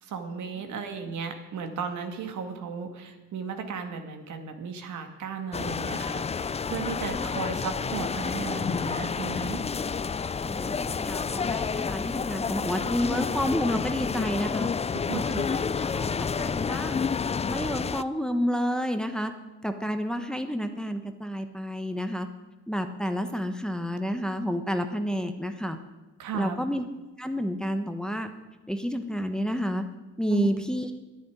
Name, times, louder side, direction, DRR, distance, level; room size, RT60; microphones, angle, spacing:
voice 1, 0.0-9.6 15.1-15.5 26.2-26.6 30.3-30.5, right 6 dB, 75° right, 5 dB, 2.1 m, -35 dB
sound 1, 5.5-18.0, left 5 dB, 20° left, 0.4 m, -29 dB
voice 2, 10.4-14.7 15.1-17.1 17.5-19.3 19.6-22.3 22.7-25.8 26.3-26.8 27.2-28.3 28.7-29.8 30.2-31.0, equal, ahead, 7 dB, 1.2 m, -30 dB
11.0 x 10.5 x 9.7 m, 1.2 s
cardioid pair, 90°, 30 cm